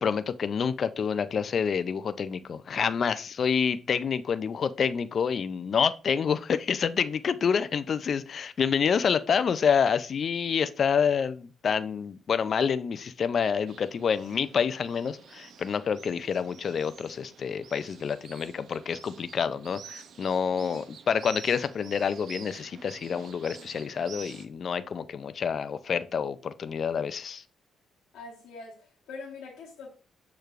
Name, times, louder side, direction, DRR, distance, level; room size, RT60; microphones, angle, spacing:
voice 1, 0.0-27.4, left 6 dB, 50° left, 0.3 m, -28 dB
sound 1, 13.7-24.5, right 7 dB, 65° right, 0.5 m, -49 dB
voice 2, 28.1-29.9, left 4 dB, 85° left, 1.1 m, -43 dB
6.5 x 3.2 x 2.5 m
cardioid pair, 90°, 0 cm